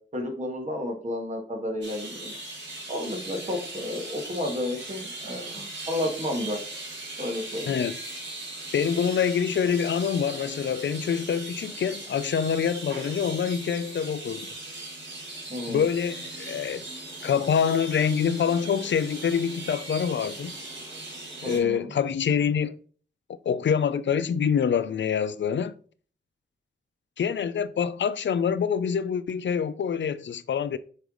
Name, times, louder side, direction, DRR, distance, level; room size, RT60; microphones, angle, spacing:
voice 1, 0.1-2.3 2.9-6.6 7.2-7.8 15.5-15.8 21.4-21.9, left 1 dB, 35° right, 1.8 m, -31 dB
sound 1, 1.8-21.6, right 2 dB, 65° right, 2.6 m, -39 dB
voice 2, 7.7-8.0 8.7-14.5 15.7-16.8 17.2-20.5 21.4-22.8 23.5-25.7 27.2-30.8, left 7 dB, 65° left, 0.5 m, -26 dB
7.9 x 3.3 x 3.8 m
cardioid pair, 55°, 20 cm